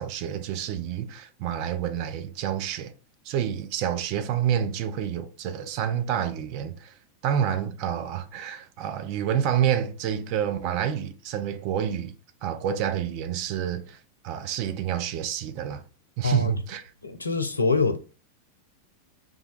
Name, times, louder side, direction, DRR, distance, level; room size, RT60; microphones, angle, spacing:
voice 1, 0.0-2.9 3.2-6.9 7.2-12.1 12.4-15.8 16.2-16.8, right 9 dB, 45° right, 0.4 m, -28 dB
voice 2, 17.0-18.0, left 4 dB, 80° left, 0.4 m, -24 dB
2.4 x 2.2 x 3.9 m
figure-of-eight pair, 90°, 0 cm